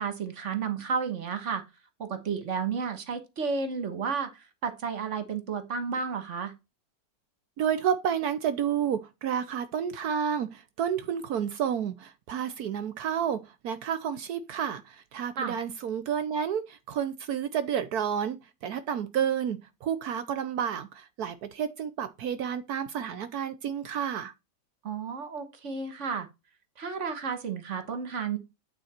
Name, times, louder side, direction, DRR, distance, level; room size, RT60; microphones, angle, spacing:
voice 1, 0.0-1.6 2.0-6.5 15.4-15.5 24.8-26.3 26.8-28.4, right 5 dB, 45° right, 1.5 m, -32 dB
voice 2, 7.6-24.3, right 8 dB, 70° right, 1.1 m, -30 dB
9.0 x 4.3 x 4.2 m
omnidirectional pair, 1.8 m